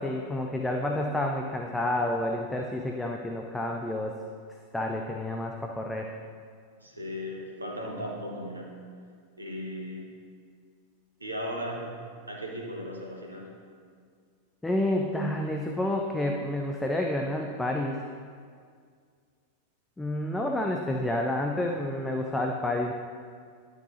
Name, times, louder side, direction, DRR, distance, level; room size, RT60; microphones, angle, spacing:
voice 1, 0.0-4.2 4.7-6.1 14.6-18.1 20.0-22.9, left 1 dB, 5° left, 1 dB, 0.5 m, -29 dB
voice 2, 6.8-8.8 9.4-10.1 11.2-12.0 12.3-13.5, equal, 80° right, -1 dB, 1.3 m, -36 dB
11.0 x 6.6 x 2.7 m, 2.1 s
figure-of-eight pair, 90°, 0 cm